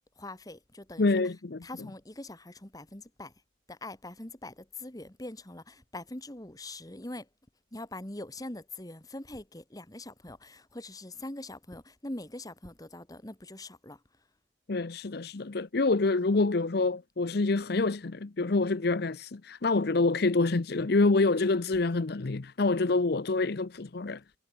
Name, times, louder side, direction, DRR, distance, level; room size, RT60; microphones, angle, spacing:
voice 1, 0.2-1.1 1.6-3.3 3.7-7.3 7.7-14.0, left 1 dB, 20° left, 1.7 m, -43 dB
voice 2, 1.0-1.6 14.7-24.2, left 3 dB, 55° left, 0.7 m, -27 dB
head